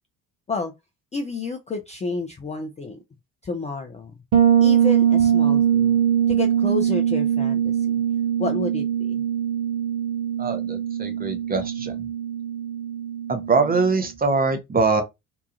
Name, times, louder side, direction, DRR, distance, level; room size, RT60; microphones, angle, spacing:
voice 1, 1.1-3.0 3.4-4.2 4.6-6.0 6.3-7.9 8.4-9.2, left 3 dB, 15° left, 0.4 m, -30 dB
Bass guitar, 4.3-14.0, right 9 dB, 75° right, 0.9 m, -22 dB
voice 2, 10.4-12.0 13.3-15.0, right 4 dB, 20° right, 0.6 m, -23 dB
2.9 x 2.3 x 2.3 m
figure-of-eight pair, 45°, 46 cm